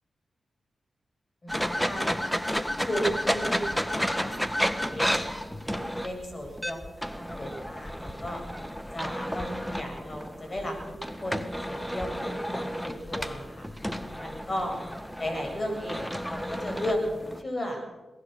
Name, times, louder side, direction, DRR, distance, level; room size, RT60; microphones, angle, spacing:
voice 1, 1.4-2.4 2.8-5.2 5.5-8.4 8.9-11.4 11.7-13.7 14.2-14.8 15.2-17.8, equal, 35° left, 2 dB, 7.7 m, -35 dB
sound 1, 1.5-17.4, equal, 5° left, 1.5 m, -32 dB
21.5 x 19.0 x 6.6 m, 1.1 s
cardioid pair, 60°, 0 cm